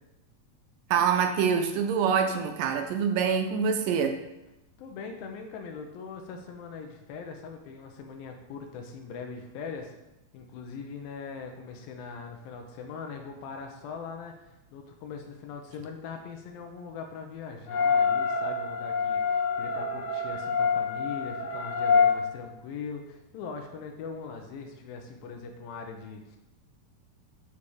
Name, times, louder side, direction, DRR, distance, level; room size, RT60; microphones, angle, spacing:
voice 1, 0.9-4.2, right 6 dB, 80° right, 6 dB, 2.2 m, -25 dB
voice 2, 4.8-9.9 10.3-14.3 14.7-26.4, left 5 dB, 80° left, 3 dB, 2.5 m, -41 dB
sound 1, 17.7-22.2, left 5 dB, 65° left, 1.6 m, -26 dB
8.5 x 4.3 x 4.8 m, 0.96 s
omnidirectional pair, 4.1 m